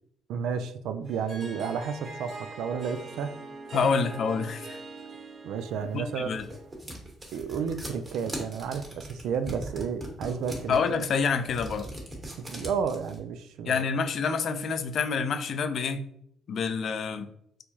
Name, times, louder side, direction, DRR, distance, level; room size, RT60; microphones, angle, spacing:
voice 1, 0.3-3.4 5.4-6.4 7.3-11.0 12.5-13.8, right 6 dB, 75° right, 10 dB, 0.3 m, -32 dB
Harp, 1.0-6.8, right 3 dB, 55° right, 0.9 m, -43 dB
voice 2, 3.7-4.8 5.9-6.4 10.7-11.9 13.6-16.0 16.5-17.3, left 5 dB, 60° left, 8 dB, 0.4 m, -27 dB
sound 1, 5.9-13.2, right 1 dB, 35° right, 1.3 m, -40 dB
4.4 x 2.3 x 2.7 m, 0.72 s
hypercardioid pair, 60°, 0 cm